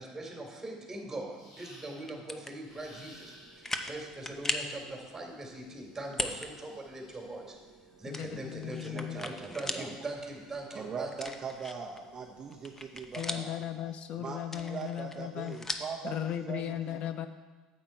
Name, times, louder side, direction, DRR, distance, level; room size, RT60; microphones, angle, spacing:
voice 1, 0.0-7.6 8.0-11.3, right 2 dB, 15° right, 0 dB, 3.0 m, -41 dB
sound 1, 1.3-2.2 2.6-3.8 5.5-7.4, left 1 dB, 90° left, 3.3 m, -56 dB
sound 2, 2.1-2.5 3.1-3.2 3.6-4.0 4.3-4.7 6.1-6.5 6.9-7.0 8.1-9.9 10.3-10.4 11.1-12.0 12.4-13.6 14.4-16.0, left 2 dB, 15° left, 0.8 m, -37 dB
sound 3, 2.6-13.4, right 3 dB, 35° left, 1.2 m, -61 dB
voice 2, 8.1-9.2 13.2-15.6 16.0-17.3, left 10 dB, 55° left, 10 dB, 0.5 m, -36 dB
voice 3, 8.9-9.9 10.7-13.6 14.2-17.0, right 5 dB, 35° right, 1 dB, 0.9 m, -41 dB
9.0 x 7.6 x 4.6 m, 1.3 s
supercardioid pair, 85°, 2 cm